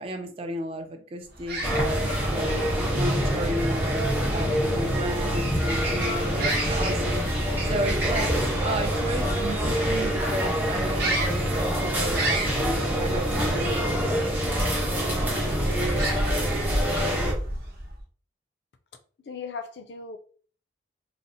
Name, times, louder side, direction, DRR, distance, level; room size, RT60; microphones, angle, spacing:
voice 1, 0.0-2.5 2.9-7.0 7.3-14.0, right 1 dB, 30° right, 0.4 m, -33 dB
sound 1, 1.3-18.0, right 1 dB, 55° right, 0.8 m, -34 dB
sound 2, 1.6-17.3, equal, 10° right, 0.8 m, -26 dB
voice 2, 19.2-20.2, left 5 dB, 60° left, 0.4 m, -37 dB
3.9 x 2.0 x 2.6 m
head